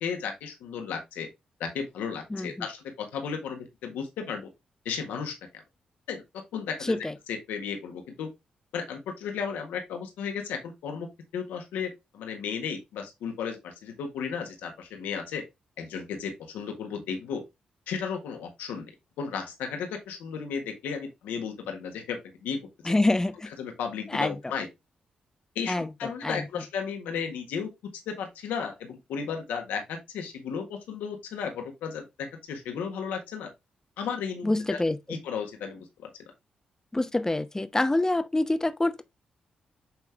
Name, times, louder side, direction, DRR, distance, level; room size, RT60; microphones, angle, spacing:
voice 1, 0.0-1.3 1.6-4.5 4.9-5.6 6.1-8.3 8.7-11.1 11.3-15.4 15.8-17.4 17.9-18.9 19.2-23.0 23.6-24.7 25.6-27.7 28.1-33.5 34.0-34.8 35.1-36.1, left 6 dB, 85° left, 1.7 m, -34 dB
voice 2, 22.9-23.5 24.1-24.3 25.7-26.4 34.4-35.0 36.9-39.0, left 2 dB, 20° left, 1.0 m, -26 dB
8.8 x 3.6 x 3.5 m
supercardioid pair, 45°, 3 cm